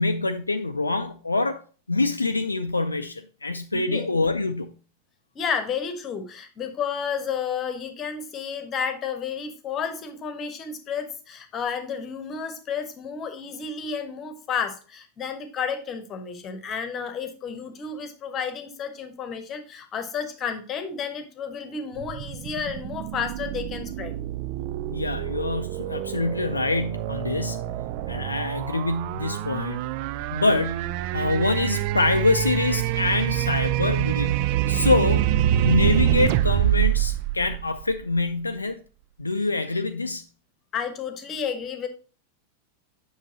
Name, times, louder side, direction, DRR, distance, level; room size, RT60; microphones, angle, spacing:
voice 1, 0.0-1.6 1.9-4.7 24.9-27.8 28.1-29.8 30.3-34.4 34.7-35.3 35.6-38.8 39.2-40.2, left 3 dB, 80° left, 0.4 m, -25 dB
voice 2, 3.7-4.1 5.3-24.1 40.7-41.9, left 6 dB, 30° left, 1.1 m, -31 dB
sound 1, 22.0-38.2, right 13 dB, 45° right, 0.3 m, -26 dB
7.4 x 6.2 x 2.8 m
figure-of-eight pair, 90°, 0 cm